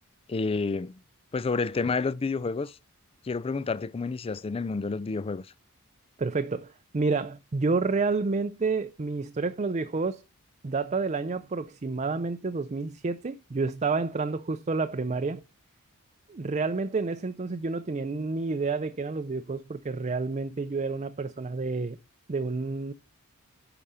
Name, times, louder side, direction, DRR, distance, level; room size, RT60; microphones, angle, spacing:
voice 1, 0.3-1.0 1.3-2.8 3.2-5.4, left 4 dB, 25° left, 0.4 m, -29 dB
voice 2, 6.2-10.2 10.6-15.4 16.3-22.0 22.3-22.9, right 4 dB, 30° right, 0.5 m, -29 dB
10.5 x 5.0 x 5.5 m
head